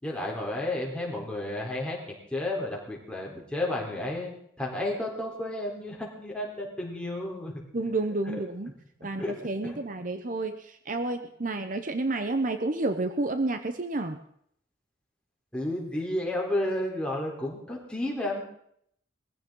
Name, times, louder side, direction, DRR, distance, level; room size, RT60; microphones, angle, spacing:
voice 1, 0.0-2.0 2.3-7.5 8.3-8.4 9.2-9.4 9.6-9.8 15.5-18.4, left 1 dB, 5° left, -2 dB, 3.8 m, -32 dB
voice 2, 7.7-8.7 9.0-14.2, right 2 dB, 45° right, 8 dB, 0.9 m, -30 dB
21.0 x 15.0 x 3.9 m, 0.69 s
head